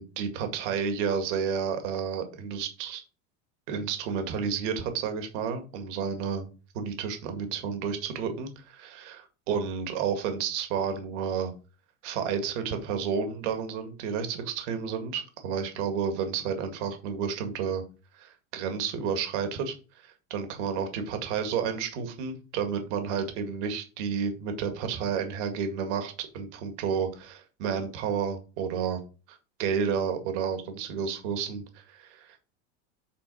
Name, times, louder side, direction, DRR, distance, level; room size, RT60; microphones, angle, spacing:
voice 1, 0.0-3.0 3.7-6.5 6.7-11.5 12.0-17.8 18.1-29.0 29.3-32.4, right 6 dB, 75° right, 6 dB, 2.0 m, -31 dB
8.4 x 3.7 x 6.2 m, 0.34 s
supercardioid pair, 145°, 36 cm